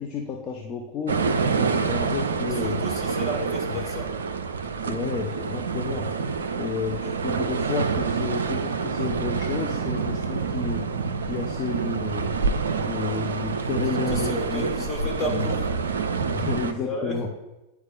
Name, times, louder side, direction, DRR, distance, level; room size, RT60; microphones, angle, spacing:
voice 1, 0.0-2.8 3.7-3.8 4.8-6.1 6.5-10.9 11.2-12.3 12.7-14.6 15.2-15.5 16.3-17.3, left 5 dB, 35° left, 1 dB, 0.6 m, -31 dB
sound 1, 1.1-16.7, right 5 dB, 70° right, 0.4 m, -27 dB
voice 2, 2.5-4.2 14.1-15.7 16.3-16.5 16.8-17.2, left 2 dB, 20° left, -1 dB, 1.5 m, -33 dB
9.5 x 4.8 x 2.4 m, 1.0 s
figure-of-eight pair, 90°, 0 cm